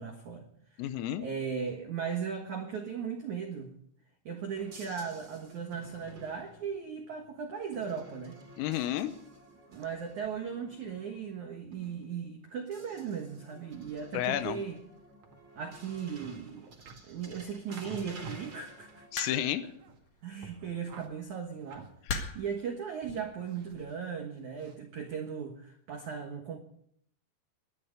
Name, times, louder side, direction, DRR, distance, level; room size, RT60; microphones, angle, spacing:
voice 1, 0.0-0.8 1.2-3.7 4.2-8.4 9.7-14.8 15.5-16.7 17.1-19.0 20.2-21.9 22.3-26.6, right 6 dB, 90° right, 4 dB, 1.6 m, -37 dB
voice 2, 0.8-1.2 8.6-9.1 14.1-14.6 19.1-19.7, left 12 dB, 90° left, 12 dB, 3.6 m, -31 dB
sound 1, 4.5-12.5 12.7-19.1, right 2 dB, 30° right, 2.1 m, -52 dB
sound 2, 15.2-18.5 18.9-20.1 20.4-22.7 23.0-24.1 24.5-24.8, right 3 dB, 55° right, 2.1 m, -51 dB
sound 3, 19.2-19.7 20.9-21.1 22.1-22.6 23.5-23.8, left 4 dB, 65° left, 1.6 m, -36 dB
20.5 x 12.5 x 5.3 m, 0.69 s
omnidirectional pair, 6.0 m